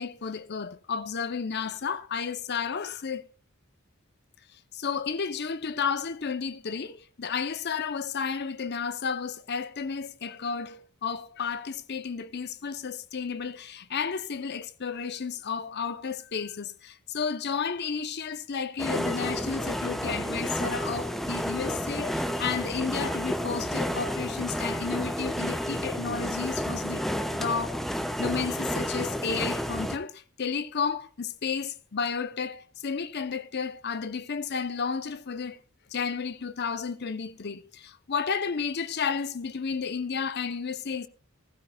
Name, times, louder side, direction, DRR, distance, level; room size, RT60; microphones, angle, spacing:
voice 1, 0.0-3.2 4.5-27.0 27.3-27.8 28.2-35.6 35.9-41.1, left 6 dB, 50° left, 0.7 m, -32 dB
sound 1, 18.8-30.0, equal, ahead, 0.8 m, -31 dB
15.5 x 15.5 x 2.3 m
head